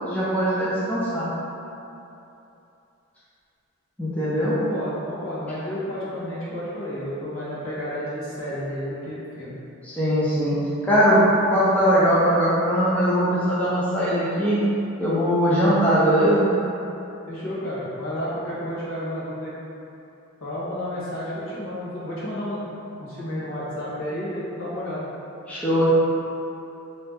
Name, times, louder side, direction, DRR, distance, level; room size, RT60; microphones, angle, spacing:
voice 1, 0.1-1.3 4.0-4.6 9.8-10.6 10.8-14.6 15.0-16.5 25.5-25.9, equal, 5° left, -10 dB, 0.5 m, -20 dB
voice 2, 4.3-9.6 17.3-19.5 20.4-22.6 23.0-25.1, equal, 65° left, -9 dB, 1.1 m, -31 dB
3.3 x 2.8 x 3.4 m, 2.9 s
head